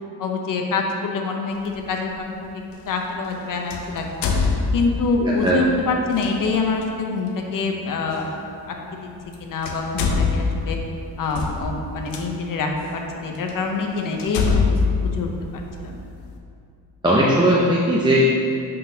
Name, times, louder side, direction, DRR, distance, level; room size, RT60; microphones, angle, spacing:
voice 1, 0.2-2.1 2.9-4.3 4.7-8.3 8.7-8.8 9.4-10.8 11.2-14.8 15.0-15.3 15.8-16.0, left 4 dB, 50° left, 2 dB, 0.8 m, -25 dB
sound 1, 1.6-1.8 3.7-5.2 6.1-6.3 8.2-8.3 9.2-9.3 9.6-12.2 12.9-13.0 13.5-13.6 14.2-16.0, left 4 dB, 85° left, 0.8 m, -23 dB
voice 2, 5.2-5.7 17.0-18.4, equal, 10° right, -5 dB, 0.5 m, -18 dB
10.5 x 3.9 x 2.8 m, 2.5 s
cardioid pair, 125°, 40 cm